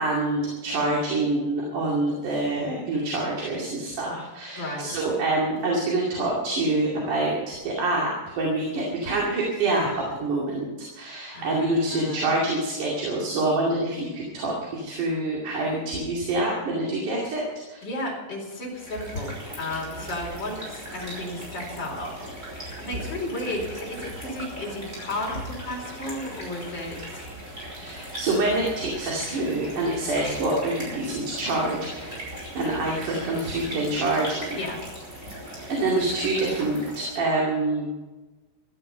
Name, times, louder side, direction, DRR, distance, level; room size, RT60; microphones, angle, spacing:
voice 1, 0.0-10.7 11.0-17.8 27.7-34.6 35.7-37.9, right 2 dB, 65° right, -3 dB, 3.9 m, -26 dB
voice 2, 4.6-4.9 11.3-12.3 17.8-27.2 34.5-34.8, left 1 dB, 30° left, -2 dB, 4.8 m, -34 dB
sound 1, 18.6-37.3, right 1 dB, 15° right, 5.8 m, -38 dB
15.5 x 13.0 x 5.6 m, 1.2 s
omnidirectional pair, 3.9 m